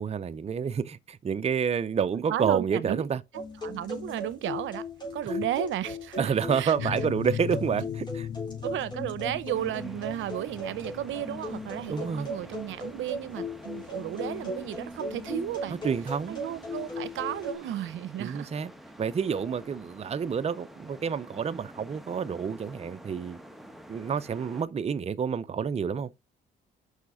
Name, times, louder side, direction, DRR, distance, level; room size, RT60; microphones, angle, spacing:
voice 1, 0.0-3.2 5.3-5.4 6.2-8.3 11.9-12.3 15.8-16.4 18.2-18.7 19.0-23.4 23.9-26.1, right 7 dB, 30° right, 0.6 m, -29 dB
voice 2, 2.3-3.0 3.6-4.8 5.1-7.0 8.6-15.8 16.3-18.5, right 12 dB, 80° right, 0.7 m, -34 dB
sound 1, 3.3-17.5, left 1 dB, 20° left, 3.8 m, -38 dB
sound 2, 6.8-16.2, left 9 dB, 60° left, 0.7 m, -39 dB
sound 3, 9.5-24.6, equal, ahead, 1.1 m, -48 dB
6.5 x 5.7 x 4.9 m
cardioid pair, 90°, 20 cm